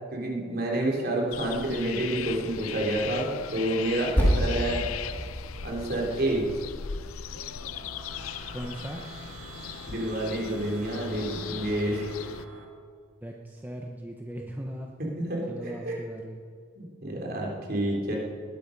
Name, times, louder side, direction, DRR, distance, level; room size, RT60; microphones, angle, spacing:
voice 1, 0.1-4.8 5.6-6.5 9.5-12.1 15.2-16.0 16.8-18.2, right 1 dB, 45° right, -2 dB, 3.7 m, -29 dB
sound 1, 1.3-12.4, left 8 dB, 80° left, 0.6 m, -39 dB
Percussion, 4.2-9.0, equal, 10° left, 5.4 m, -31 dB
sound 2, 7.0-12.6, right 3 dB, 70° right, 2.5 m, -48 dB
voice 2, 8.5-9.0 13.2-14.9 15.5-16.4, equal, 10° right, 1 dB, 0.9 m, -38 dB
19.5 x 13.5 x 5.3 m, 2.1 s
head